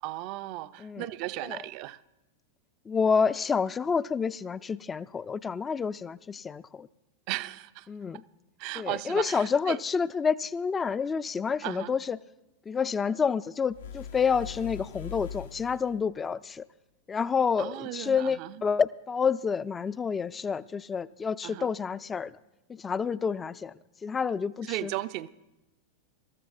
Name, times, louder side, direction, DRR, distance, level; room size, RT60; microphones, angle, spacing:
voice 1, 0.0-2.0 7.3-7.9 8.6-9.8 11.6-11.9 17.6-18.6 21.4-21.7 24.6-25.3, right 17 dB, 45° right, 0.5 m, -36 dB
voice 2, 2.9-6.9 7.9-8.2 8.8-12.2 12.7-16.7 17.1-22.3 22.7-23.7 24.0-24.9, left 6 dB, 20° left, 0.4 m, -29 dB
sound 1, 13.7-16.1, left 8 dB, 65° left, 0.6 m, -41 dB
26.0 x 14.0 x 2.5 m
figure-of-eight pair, 90°, 0 cm